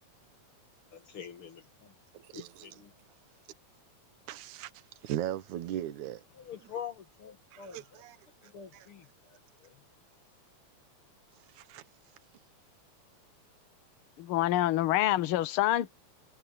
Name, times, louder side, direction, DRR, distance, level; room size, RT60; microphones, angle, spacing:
voice 1, 0.9-1.9 2.3-2.9 6.5-7.8 8.5-9.1, left 8 dB, 50° left, 2.5 m, -44 dB
voice 2, 2.1-2.8 4.3-4.7 5.0-6.2 6.6-6.7 7.5-8.2 8.4-8.9 11.5-11.8, right 12 dB, 75° right, 2.6 m, -38 dB
voice 3, 14.2-15.9, left 14 dB, 80° left, 1.2 m, -26 dB
omnidirectional pair, 3.5 m